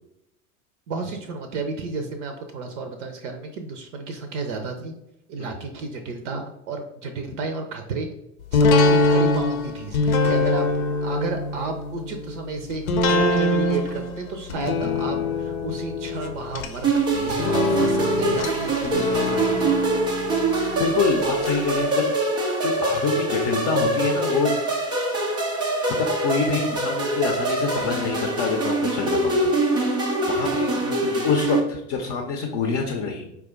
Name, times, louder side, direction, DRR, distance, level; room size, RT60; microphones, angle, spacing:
voice 1, 0.9-4.9 5.3-8.1 8.5-10.7 11.0-19.8 30.8-31.3, right 3 dB, 55° right, 6 dB, 0.6 m, -32 dB
sound 1, 8.5-21.5 21.8-21.9, left 2 dB, 70° left, 0.7 m, -24 dB
sound 2, 16.8-31.6, right 2 dB, 10° right, 0.3 m, -24 dB
voice 2, 20.8-22.1 22.6-24.5 26.0-30.0 30.3-30.7 31.2-33.3, left 4 dB, 35° left, 2 dB, 0.6 m, -26 dB
4.7 x 2.3 x 3.6 m, 0.84 s
figure-of-eight pair, 80°, 45 cm